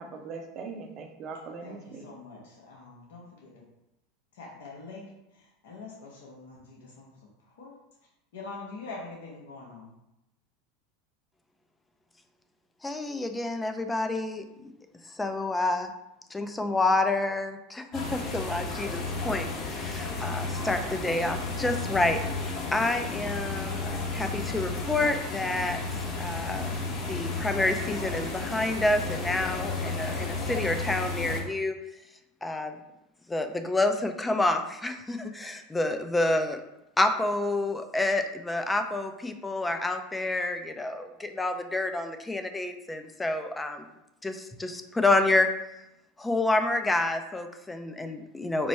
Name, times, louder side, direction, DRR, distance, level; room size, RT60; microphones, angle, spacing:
voice 1, 0.0-2.0, right 4 dB, 45° right, 4 dB, 0.7 m, -40 dB
voice 2, 1.6-3.6 4.3-5.1 5.3-7.1 7.6-7.7 8.3-9.9, left 3 dB, 75° left, -2 dB, 1.0 m, -44 dB
voice 3, 12.8-14.7 15.1-15.9 16.3-25.8 26.2-26.8 27.1-31.8 32.4-32.8 33.3-36.6 37.0-43.9 44.2-45.5 46.2-48.7, left 2 dB, 10° left, 7 dB, 0.5 m, -28 dB
sound 1, 17.9-31.4, left 3 dB, 50° left, 1.2 m, -33 dB
4.4 x 2.2 x 4.2 m, 0.87 s
hypercardioid pair, 100°, 0 cm